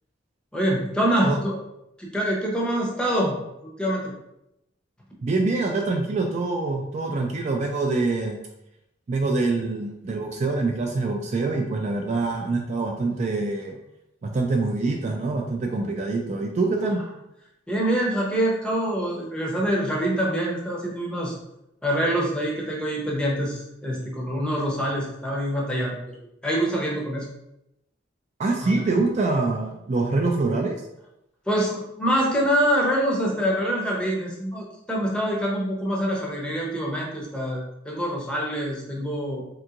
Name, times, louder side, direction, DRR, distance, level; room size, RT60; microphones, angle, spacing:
voice 1, 0.5-1.6 2.0-3.3 3.6-4.1 17.7-21.4 21.8-25.9 26.4-27.3 28.6-28.9 31.5-39.4, equal, 5° left, -3 dB, 0.7 m, -25 dB
voice 2, 5.2-8.4 9.1-13.8 14.2-17.0 28.4-30.8, right 3 dB, 40° right, 2 dB, 0.3 m, -25 dB
3.4 x 2.8 x 2.4 m, 0.84 s
head